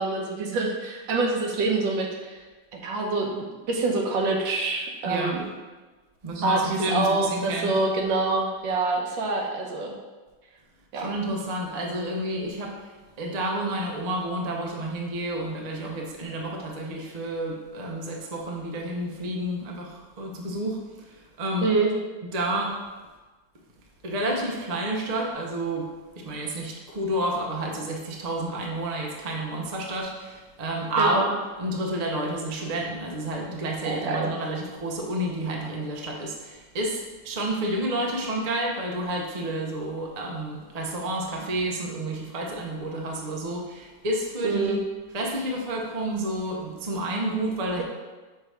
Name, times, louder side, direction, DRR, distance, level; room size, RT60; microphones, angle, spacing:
voice 1, 0.0-2.4 2.7-5.4 6.4-9.9 10.9-11.1 21.6-21.9 31.0-31.2 33.8-34.3 44.4-44.8, right 3 dB, 80° right, 0 dB, 1.5 m, -26 dB
voice 2, 5.0-5.3 6.2-7.8 10.9-21.7 22.3-22.7 24.0-25.9 26.1-44.8 45.1-47.8, right 1 dB, 50° right, -1 dB, 0.4 m, -30 dB
5.7 x 3.3 x 4.9 m, 1.3 s
omnidirectional pair, 2.0 m